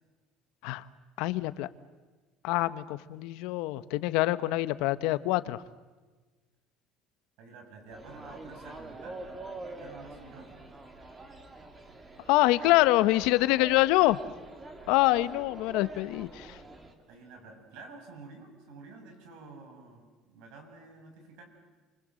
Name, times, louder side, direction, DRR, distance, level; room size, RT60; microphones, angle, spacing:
voice 1, 1.2-1.7 2.4-5.6 12.3-14.2 14.9-16.6, left 18 dB, 80° left, 15 dB, 1.0 m, -25 dB
voice 2, 7.4-10.6 17.1-21.4, right 3 dB, 75° right, 4 dB, 7.2 m, -50 dB
sound 1, 7.9-16.9, right 2 dB, 20° right, 2.4 m, -45 dB
28.5 x 25.0 x 7.7 m, 1.3 s
cardioid pair, 160°, 0 cm